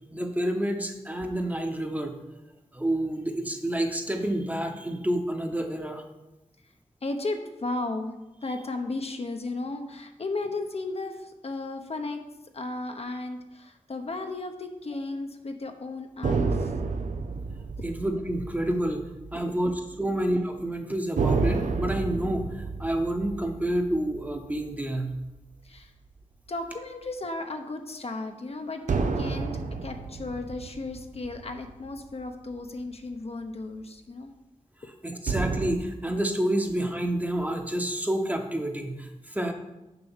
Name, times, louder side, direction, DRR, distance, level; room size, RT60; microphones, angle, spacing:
voice 1, 0.1-2.1 2.7-6.0 17.8-19.0 19.3-25.1 35.0-39.5, right 1 dB, 10° right, 4 dB, 1.0 m, -29 dB
voice 2, 7.0-8.2 8.4-12.2 12.5-16.7 17.8-17.9 19.5-19.6 20.0-20.2 25.6-25.9 26.5-29.5 29.8-34.3 34.8-34.9, left 2 dB, 55° left, 5 dB, 0.9 m, -35 dB
sound 1, 16.2-20.0 20.2-20.4 21.2-25.8 28.9-32.5 35.3-35.7, right 4 dB, 90° right, 0.7 m, -31 dB
6.9 x 5.3 x 7.2 m, 1.0 s
wide cardioid pair, 105°, 13 cm